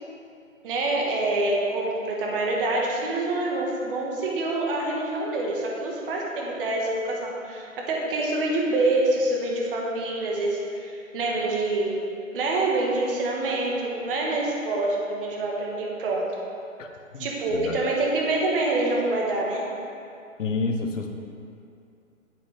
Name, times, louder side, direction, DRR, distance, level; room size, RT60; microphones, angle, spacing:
voice 1, 0.6-12.0 12.3-16.3 17.2-19.7, right 2 dB, 40° right, -2 dB, 1.7 m, -26 dB
voice 2, 16.8-17.8 20.4-21.1, left 3 dB, 65° left, 4 dB, 1.2 m, -30 dB
9.6 x 9.6 x 3.5 m, 2.5 s
hypercardioid pair, 145°, 40 cm